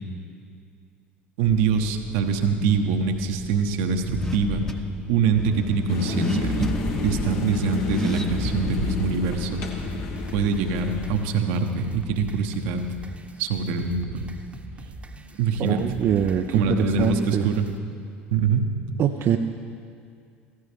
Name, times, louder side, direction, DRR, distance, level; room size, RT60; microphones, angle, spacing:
Car / Accelerating revving vroom, 1.4-10.6, left 1 dB, 10° left, 0.9 m, -32 dB
voice 1, 1.4-4.7 5.1-6.7 7.0-9.7 10.3-12.8 13.4-14.3 15.4-15.8 16.5-17.7 18.3-18.7, right 5 dB, 65° right, 5 dB, 1.0 m, -24 dB
sound 1, 5.9-11.1, left 4 dB, 60° left, 1.5 m, -31 dB
sound 2, 9.8-17.8, right 2 dB, 20° right, 1.0 m, -42 dB
voice 2, 15.6-17.5 19.0-19.4, right 9 dB, 45° right, 5 dB, 0.5 m, -23 dB
16.0 x 15.5 x 3.4 m, 2.3 s
figure-of-eight pair, 70°, 6 cm